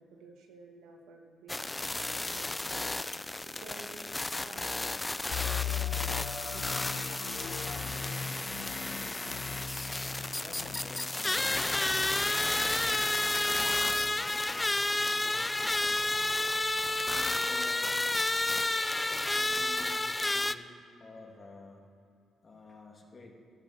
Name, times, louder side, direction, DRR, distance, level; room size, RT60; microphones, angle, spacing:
voice 1, 0.0-7.0 7.3-7.9, right 4 dB, 85° right, 2 dB, 1.5 m, -53 dB
sound 1, 1.5-20.5, left 2 dB, 15° left, 0.4 m, -31 dB
sound 2, 5.3-15.0 15.4-15.5 16.0-16.2, left 8 dB, 70° left, 0.7 m, -40 dB
voice 2, 10.4-14.7 15.1-16.3 17.1-18.0 18.8-20.7 21.0-21.8 22.4-23.3, left 3 dB, 35° left, 1 dB, 2.3 m, -51 dB
12.5 x 8.8 x 6.5 m, 2.5 s
cardioid pair, 90°, 0 cm